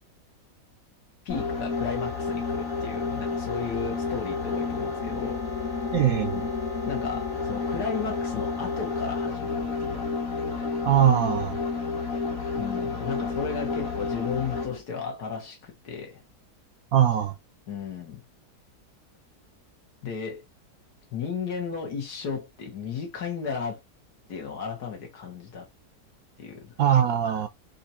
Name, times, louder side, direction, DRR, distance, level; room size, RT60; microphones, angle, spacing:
voice 1, 1.2-5.7 6.8-10.2 12.6-16.2 17.7-18.2 20.0-20.4 21.1-23.8 24.3-25.7 26.4-26.7, left 6 dB, 70° left, 1.8 m, -34 dB
sound 1, 1.3-14.8, left 4 dB, 55° left, 2.0 m, -30 dB
voice 2, 5.9-6.5 10.8-11.6 16.9-17.3 26.8-27.5, right 10 dB, 70° right, 1.0 m, -21 dB
4.4 x 2.5 x 4.2 m
omnidirectional pair, 1.8 m